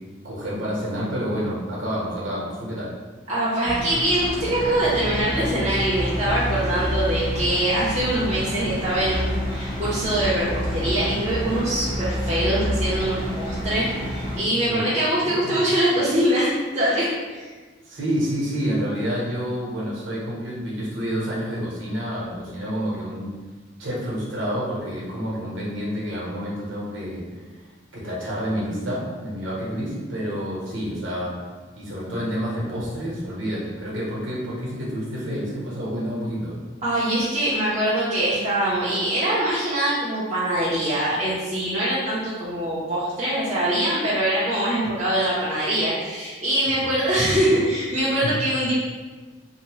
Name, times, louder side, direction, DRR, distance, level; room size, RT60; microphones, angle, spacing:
voice 1, 0.2-2.9 14.7-14.9 15.1-15.6 17.8-23.4 23.8-27.2 27.9-31.3 31.7-36.6 46.8-46.9 48.2-48.3, equal, 70° right, -5 dB, 0.9 m, -28 dB
voice 2, 3.3-17.5 36.8-48.7, right 1 dB, 35° right, -9 dB, 0.6 m, -23 dB
sound 1, 3.6-14.4, equal, 25° left, 0.6 m, -28 dB
2.7 x 2.1 x 3.0 m, 1.3 s
head